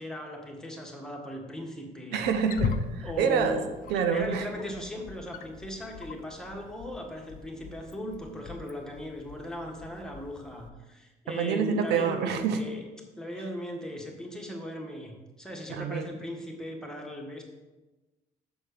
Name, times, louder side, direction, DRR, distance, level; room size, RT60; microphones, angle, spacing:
voice 1, 0.0-2.3 3.0-3.7 4.1-12.8 13.2-17.4, left 1 dB, 5° left, 0 dB, 1.6 m, -38 dB
voice 2, 2.1-3.6 3.9-4.5 11.3-12.6 15.7-16.1, right 6 dB, 85° right, 8 dB, 0.8 m, -27 dB
Wild animals, 2.2-10.7, left 5 dB, 55° left, 0.6 m, -40 dB
7.0 x 4.3 x 6.7 m, 1.1 s
cardioid pair, 110°, 17 cm